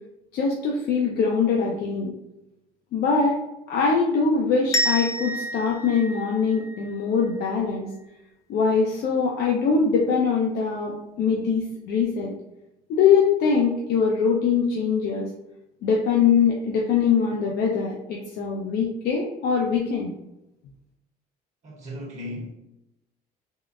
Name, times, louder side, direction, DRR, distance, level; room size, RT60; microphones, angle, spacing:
voice 1, 0.3-2.1 2.9-3.4 3.7-7.9 8.5-12.3 12.9-15.3 15.8-20.1, left 5 dB, 70° left, -2 dB, 0.5 m, -22 dB
sound 1, 4.7-7.5, equal, 20° left, 0.4 m, -29 dB
voice 2, 21.6-22.5, left 1 dB, 45° right, -2 dB, 0.9 m, -36 dB
3.6 x 2.1 x 2.4 m, 0.91 s
cardioid pair, 110°, 17 cm